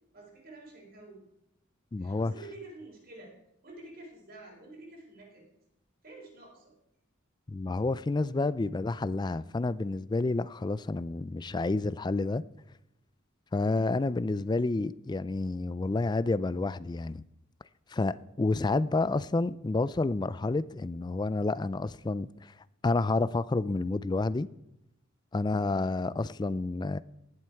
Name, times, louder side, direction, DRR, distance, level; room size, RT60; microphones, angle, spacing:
voice 1, 0.1-1.2 2.0-3.3 3.6-5.5 6.0-6.8, right 2 dB, 50° right, 4.1 m, -49 dB
voice 2, 1.9-2.3 7.5-12.4 13.5-17.2 17.9-22.5 22.8-24.5 25.3-27.0, left 3 dB, 20° left, 0.3 m, -29 dB
18.5 x 7.7 x 4.7 m
head